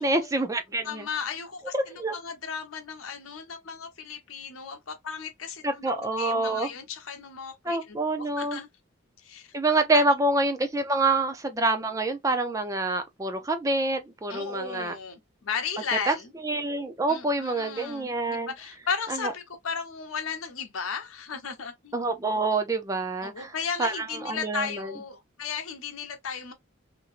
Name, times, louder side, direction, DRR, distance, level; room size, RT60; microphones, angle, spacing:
voice 1, 0.0-1.1 1.7-2.1 5.6-6.7 7.7-8.6 9.5-14.9 16.1-16.2 16.4-18.5 19.1-19.3 21.9-23.5 23.8-24.9, right 2 dB, 15° right, 0.4 m, -26 dB
voice 2, 0.8-5.8 6.2-8.7 9.2-9.5 9.9-10.0 14.3-16.3 17.1-22.0 23.2-26.5, left 6 dB, 85° left, 0.8 m, -35 dB
2.9 x 2.6 x 2.4 m
head